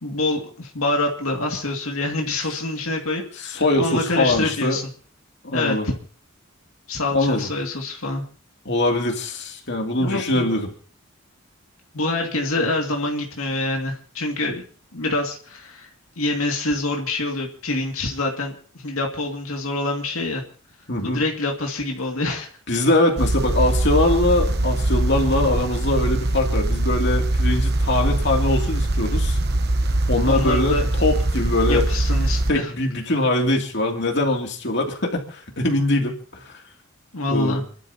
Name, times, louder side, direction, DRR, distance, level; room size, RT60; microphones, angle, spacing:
voice 1, 0.0-4.8 5.5-5.9 6.9-8.2 10.0-10.5 11.9-14.6 14.9-15.9 16.2-20.4 21.0-22.5 30.2-30.9 31.7-32.7 37.1-37.6, left 2 dB, 85° left, 1 dB, 2.3 m, -26 dB
voice 2, 3.4-4.8 5.4-5.9 7.1-7.5 8.6-10.7 20.9-21.2 22.7-29.4 30.1-31.9 32.5-36.6 37.3-37.6, left 2 dB, 55° left, 2 dB, 2.7 m, -22 dB
sound 1, 23.2-32.5, right 1 dB, 50° right, 1.1 m, -22 dB
29.5 x 12.0 x 2.9 m, 0.43 s
head